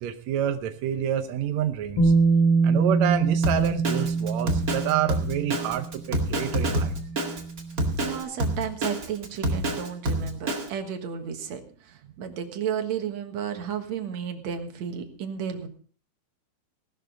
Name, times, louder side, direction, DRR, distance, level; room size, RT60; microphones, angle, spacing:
voice 1, 0.0-2.1 2.6-6.9, right 10 dB, 80° right, 7 dB, 1.6 m, -28 dB
Bass guitar, 2.0-8.0, right 4 dB, 85° left, 5.2 m, -25 dB
Drum kit, 3.4-10.7, right 1 dB, 30° right, 1.7 m, -27 dB
voice 2, 8.0-15.7, right 8 dB, 55° right, 6 dB, 2.3 m, -33 dB
17.5 x 12.5 x 3.9 m, 0.42 s
omnidirectional pair, 4.4 m